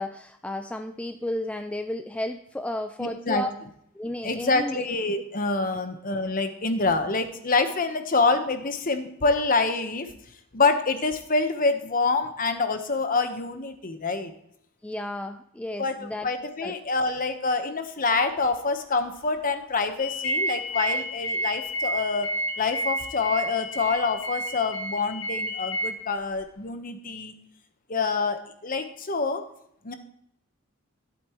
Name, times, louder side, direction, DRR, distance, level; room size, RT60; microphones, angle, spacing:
voice 1, 0.0-3.5 3.9-4.8 14.8-16.3 16.6-16.7, left 1 dB, 5° left, 6 dB, 0.3 m, -33 dB
voice 2, 3.0-3.4 4.2-10.1 10.5-14.3 15.8-15.9 16.2-22.3 22.6-27.3 27.9-29.4 29.8-29.9, left 3 dB, 40° left, 8 dB, 1.0 m, -26 dB
sound 1, 20.0-25.9, right 1 dB, 70° left, 1.8 m, -30 dB
14.5 x 8.5 x 3.0 m, 0.72 s
head